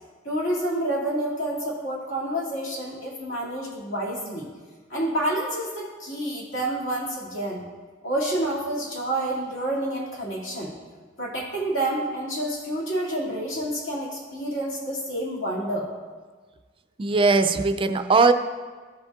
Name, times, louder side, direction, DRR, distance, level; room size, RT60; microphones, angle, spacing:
voice 1, 0.2-4.5 4.9-7.6 8.0-10.7 11.2-15.9, right 1 dB, 65° left, -5 dB, 2.2 m, -28 dB
voice 2, 17.0-18.3, right 4 dB, 25° right, 9 dB, 0.3 m, -19 dB
14.0 x 5.4 x 2.3 m, 1.5 s
head